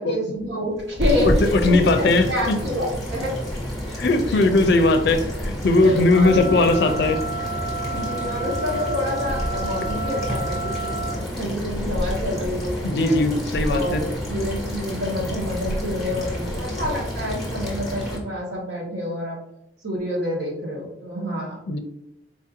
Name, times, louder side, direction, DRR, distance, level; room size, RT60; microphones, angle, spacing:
voice 1, 0.0-2.8 3.1-3.4 3.9-4.0 4.3-4.5 5.8-6.5 7.9-13.2 13.7-19.4 19.8-21.6, left 1 dB, 80° right, -2 dB, 1.2 m, -28 dB
sound 1, 0.7-18.2, equal, ahead, 1.3 m, -29 dB
voice 2, 1.2-2.6 4.0-7.2 12.8-14.0 21.7-21.8, left 2 dB, 65° left, 7 dB, 0.4 m, -19 dB
sound 2, 6.1-11.1, right 3 dB, 20° right, 0.8 m, -31 dB
4.2 x 2.7 x 2.5 m, 0.84 s
head